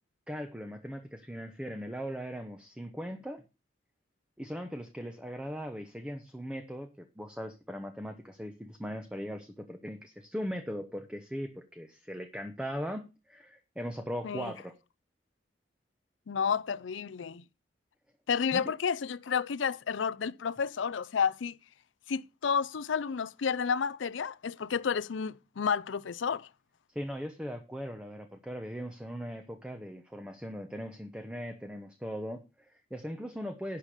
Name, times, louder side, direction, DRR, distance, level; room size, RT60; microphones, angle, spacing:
voice 1, 0.3-3.4 4.4-14.7 18.5-18.7 26.9-33.8, equal, 5° right, 0.8 m, -39 dB
voice 2, 16.3-17.4 18.3-21.5 22.1-26.5, left 6 dB, 80° left, 0.5 m, -31 dB
11.5 x 6.8 x 5.0 m
head